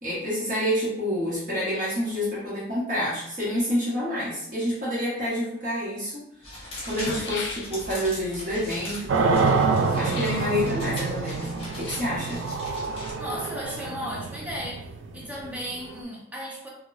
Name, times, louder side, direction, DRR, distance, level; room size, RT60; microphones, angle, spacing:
voice 1, 0.0-12.5, equal, 40° right, -8 dB, 1.0 m, -28 dB
sound 1, 5.5-5.6 6.5-6.6 6.8-8.1 10.0-10.5 11.7-12.2 13.1-13.9 14.2-14.3, left 4 dB, 75° left, 0.5 m, -38 dB
sound 2, 6.4-13.1, left 1 dB, 30° left, 1.1 m, -40 dB
sound 3, 9.1-16.0, right 4 dB, 80° right, 0.3 m, -27 dB
voice 2, 13.2-14.9 15.1-16.7, equal, 10° right, -4 dB, 0.7 m, -35 dB
3.8 x 2.2 x 2.5 m, 0.79 s
head